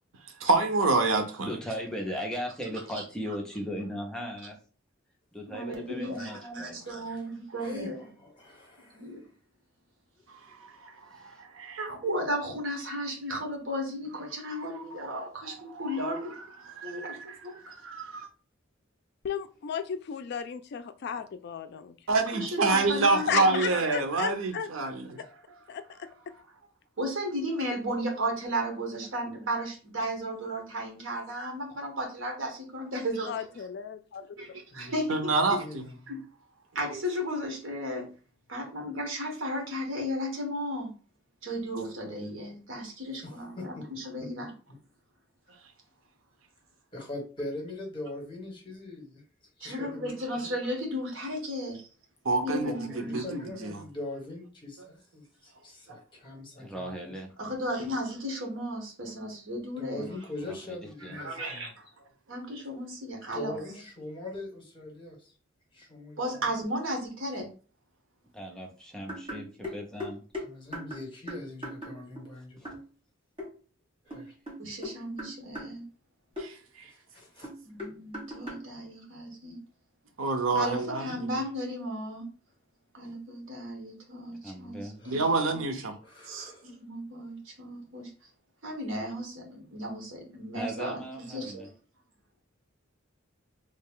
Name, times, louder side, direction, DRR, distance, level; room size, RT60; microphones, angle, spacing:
voice 1, 0.4-1.5 10.8-10.9 11.5-11.8 15.1-15.2 15.8-15.9 16.8-17.2 17.6-18.3 22.1-25.2 35.1-35.8 36.9-37.0 52.2-53.4 76.4-76.5 80.2-81.3 85.1-85.9 86.3-86.5, right 3 dB, 90° right, 0.7 m, -27 dB
voice 2, 1.4-4.6 5.3-7.1 11.1-11.4 56.6-57.3 60.5-60.8 61.0-61.2 68.3-70.2 72.6-72.7 84.4-85.0 90.5-91.7, equal, 5° left, 0.6 m, -38 dB
voice 3, 5.5-8.0 8.9-9.2 11.8-16.4 16.8-17.2 17.4-17.5 22.3-23.8 27.0-33.6 34.4-35.3 36.1-36.2 36.7-38.1 38.5-40.9 41.4-43.8 44.0-44.5 49.6-51.9 52.4-53.2 57.4-60.1 61.1-61.9 62.3-63.6 66.2-67.5 74.6-75.9 77.6-79.6 80.5-82.3 82.9-84.8 85.1-85.2 85.5-85.6 86.6-88.1 88.6-91.0 91.3-91.7, equal, 70° right, 1.2 m, -34 dB
voice 4, 7.6-9.1 34.7-34.9 35.4-36.2 43.2-43.8 44.2-44.4 46.9-49.2 49.6-50.5 52.6-57.1 59.8-61.7 63.3-65.3 65.7-66.6 70.4-72.8 74.0-74.3 76.9-77.5 85.0-85.4 86.0-86.8, left 2 dB, 25° left, 1.2 m, -42 dB
voice 5, 19.2-22.2 23.3-24.7 25.7-26.1 33.3-34.4, left 7 dB, 55° left, 0.3 m, -34 dB
sound 1, 69.1-72.3 72.6-72.9 73.4-73.5 74.1-75.8 76.4-76.5 77.4-78.7, left 1 dB, 30° right, 1.3 m, -39 dB
3.2 x 2.3 x 3.5 m
head